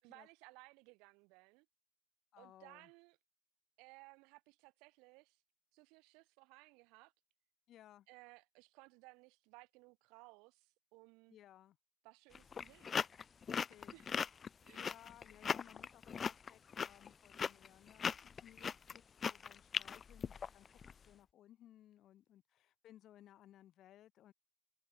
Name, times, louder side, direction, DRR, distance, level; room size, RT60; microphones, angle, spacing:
voice 1, 0.0-1.7 2.4-3.2 3.8-5.4 5.7-7.1 8.1-11.4 12.0-13.0 13.9-14.2 14.6-14.9, right 27 dB, 75° right, 3.1 m, -61 dB
voice 2, 2.3-2.9 7.7-8.1 11.3-11.8 13.5-14.0 14.7-24.3, left 12 dB, 55° left, 1.8 m, -61 dB
sound 1, 12.3-20.9, left 6 dB, 35° left, 0.3 m, -39 dB
supercardioid pair, 100°, 0 cm